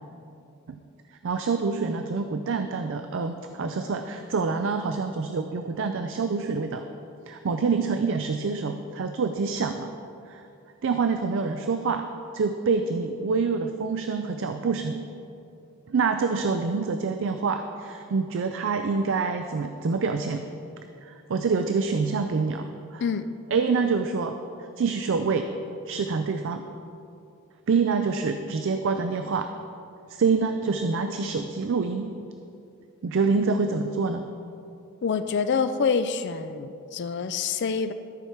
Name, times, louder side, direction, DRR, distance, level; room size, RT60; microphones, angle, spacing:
voice 1, 1.2-6.9 7.3-9.9 10.3-10.4 10.8-12.0 12.3-15.0 15.9-20.4 21.0-23.0 23.5-25.5 25.9-26.7 27.7-29.5 30.1-32.1 33.0-34.2, right 4 dB, 60° right, 7 dB, 0.4 m, -26 dB
voice 2, 35.0-37.9, left 5 dB, 50° left, 10 dB, 0.4 m, -26 dB
13.0 x 4.6 x 5.8 m, 2.6 s
head